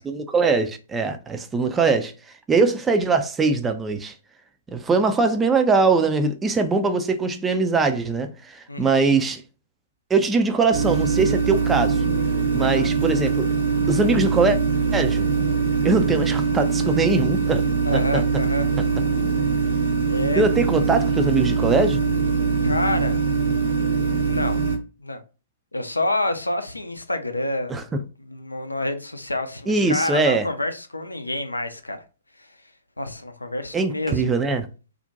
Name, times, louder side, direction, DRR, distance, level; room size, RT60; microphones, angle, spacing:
voice 1, 0.0-2.1 2.5-4.1 4.7-9.4 10.1-12.0 12.5-13.5 13.9-14.6 14.9-15.3 15.8-17.6 17.9-18.2 20.4-22.0 27.7-27.8 29.7-30.4 33.7-34.7, right 4 dB, 10° right, 0.3 m, -21 dB
voice 2, 8.7-9.0 12.6-12.9 17.8-18.7 20.1-20.5 22.6-23.4 24.2-24.6 25.0-25.2 25.7-32.0 32.4-32.6 33.0-34.2, left 1 dB, 80° left, 0.4 m, -28 dB
sound 1, 10.7-24.8, right 5 dB, 60° right, 0.7 m, -22 dB
2.5 x 2.1 x 2.6 m
figure-of-eight pair, 115°, 0 cm